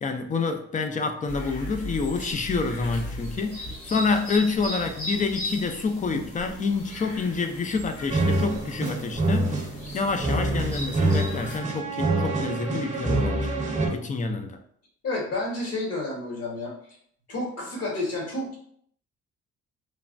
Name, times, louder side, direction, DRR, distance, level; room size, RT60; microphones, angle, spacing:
voice 1, 0.0-9.7 9.9-13.4 13.9-14.6, left 4 dB, 25° left, 6 dB, 0.4 m, -28 dB
sound 1, 1.3-11.6, left 1 dB, 85° left, 1.5 m, -37 dB
sound 2, 8.1-13.9, right 2 dB, 25° right, 0.7 m, -26 dB
voice 2, 15.0-16.7 17.3-18.6, left 2 dB, 55° left, -2 dB, 1.3 m, -30 dB
3.1 x 2.1 x 2.5 m, 0.62 s
cardioid pair, 90°, 30 cm